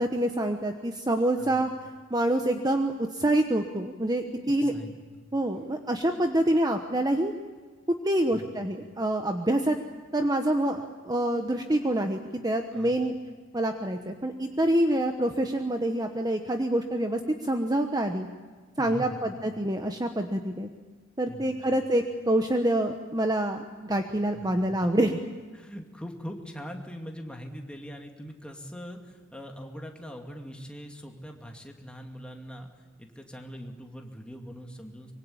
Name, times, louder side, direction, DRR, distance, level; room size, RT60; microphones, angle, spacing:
voice 1, 0.0-1.7 2.1-4.7 5.3-7.3 8.0-9.8 10.1-13.1 13.5-18.3 18.8-20.7 21.2-25.2, right 1 dB, 20° right, 5 dB, 1.1 m, -26 dB
voice 2, 4.3-4.9 8.3-8.5 12.7-13.1 18.8-19.3 21.3-21.7 24.3-24.9 25.5-32.7 33.0-35.1, equal, 5° left, 2 dB, 2.5 m, -42 dB
24.5 x 23.5 x 8.7 m, 1.4 s
head